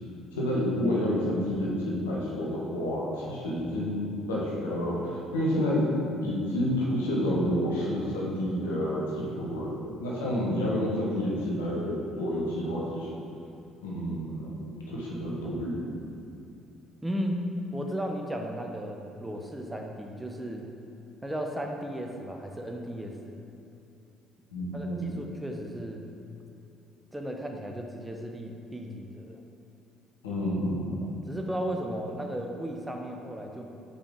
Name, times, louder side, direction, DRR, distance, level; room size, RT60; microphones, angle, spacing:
voice 1, 0.3-4.0 4.3-5.0 5.3-6.0 6.2-9.0 9.4-13.2 13.8-15.9 24.5-25.3 30.2-30.9, equal, 80° left, -4 dB, 1.2 m, -29 dB
voice 2, 17.0-17.4 17.7-20.7 21.2-23.4 24.7-26.0 27.1-29.4 31.0-33.6, equal, 10° right, 2 dB, 0.8 m, -35 dB
5.1 x 4.7 x 5.1 m, 2.8 s
hypercardioid pair, 55°, 0 cm